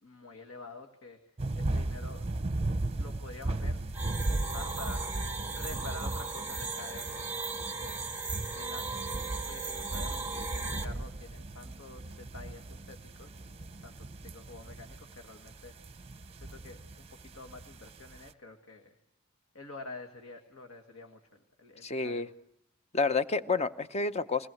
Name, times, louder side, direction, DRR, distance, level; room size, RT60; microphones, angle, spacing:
voice 1, 0.0-1.2 1.6-2.3 3.0-3.8 4.2-5.1 5.5-7.4 7.8-13.6 13.8-15.7 16.5-18.9 19.5-22.3, left 3 dB, 75° left, 5 dB, 1.9 m, -48 dB
sound 1, 1.4-18.3, right 2 dB, 30° right, 0.8 m, -37 dB
sound 2, 3.9-10.8, right 4 dB, 10° right, 1.5 m, -37 dB
voice 2, 21.8-22.3 22.9-24.5, left 4 dB, 30° left, 12 dB, 0.7 m, -29 dB
21.5 x 18.5 x 7.7 m, 0.80 s
head